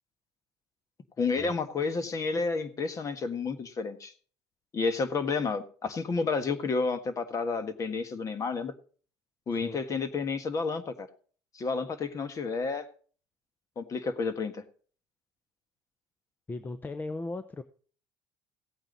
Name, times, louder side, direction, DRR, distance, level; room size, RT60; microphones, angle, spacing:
voice 1, 1.2-4.1 4.7-8.7 9.5-11.1 11.5-12.9 13.8-14.6, left 4 dB, 35° left, 10 dB, 1.6 m, -30 dB
voice 2, 16.5-17.6, left 2 dB, 20° left, 11 dB, 0.7 m, -37 dB
16.0 x 8.8 x 4.0 m, 0.42 s
cardioid pair, 125°, 9 cm